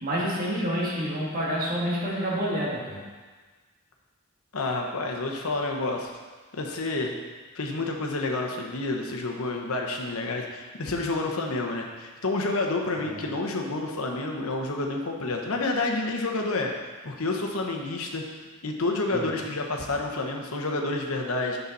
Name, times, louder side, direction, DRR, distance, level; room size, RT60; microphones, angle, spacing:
voice 1, 0.0-3.1 13.1-13.3 19.1-19.3, equal, 40° right, -6 dB, 1.9 m, -28 dB
voice 2, 4.5-6.1 6.5-7.2 7.6-16.7 17.0-18.2 18.6-21.6, left 2 dB, 75° left, 2 dB, 1.0 m, -29 dB
7.0 x 6.9 x 4.1 m, 1.4 s
head